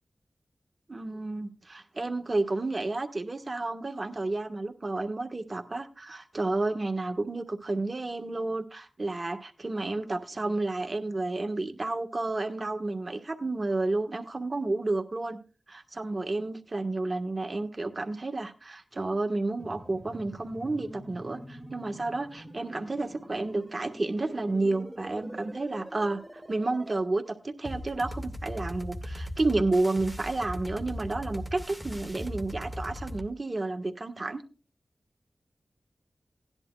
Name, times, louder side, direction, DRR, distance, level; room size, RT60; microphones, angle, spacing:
voice 1, 0.9-15.4 15.7-34.4, right 2 dB, 45° right, 1.5 m, -31 dB
sound 1, 19.6-27.0, right 1 dB, 15° right, 2.4 m, -45 dB
sound 2, 27.6-33.3, equal, 5° left, 2.0 m, -38 dB
18.0 x 10.5 x 2.4 m
cardioid pair, 40°, 0 cm